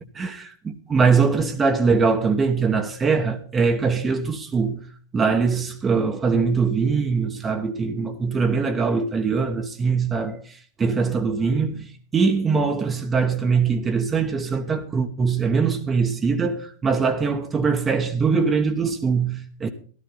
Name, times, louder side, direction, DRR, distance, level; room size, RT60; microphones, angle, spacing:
voice 1, 0.0-4.8 5.1-19.7, right 5 dB, 20° right, 1.1 m, -22 dB
13.0 x 13.0 x 3.9 m
figure-of-eight pair, 90°, 0 cm